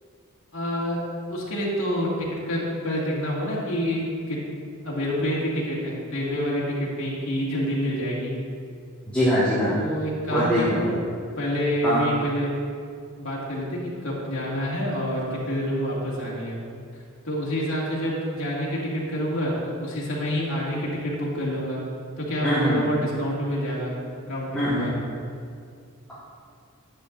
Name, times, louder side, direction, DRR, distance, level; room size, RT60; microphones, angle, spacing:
voice 1, 0.5-1.0 1.3-4.4 4.8-8.3 9.7-11.0 11.4-12.5 12.9-16.6 17.2-21.8 22.2-23.9 24.3-24.9, equal, 60° left, -5 dB, 2.2 m, -27 dB
voice 2, 9.1-9.7 10.3-10.8 11.8-12.0 22.4-22.8 24.5-24.9, equal, 5° left, -12 dB, 1.7 m, -22 dB
11.0 x 8.1 x 2.6 m, 2.2 s
head